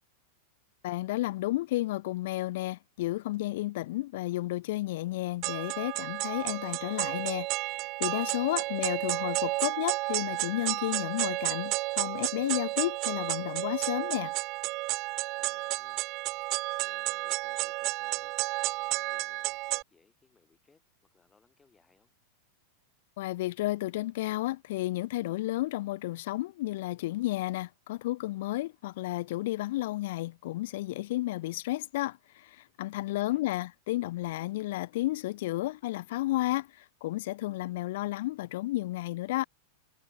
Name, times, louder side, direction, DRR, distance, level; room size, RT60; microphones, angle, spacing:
voice 1, 0.8-14.3 23.2-39.4, left 17 dB, 70° left, 0.5 m, -32 dB
sound 1, 5.4-19.8, right 23 dB, 50° right, 0.4 m, -32 dB
voice 2, 8.4-8.8 15.3-16.0 16.8-18.4 18.7-22.1 33.1-33.7, left 4 dB, 15° left, 2.8 m, -65 dB
hypercardioid pair, 120°, 0 cm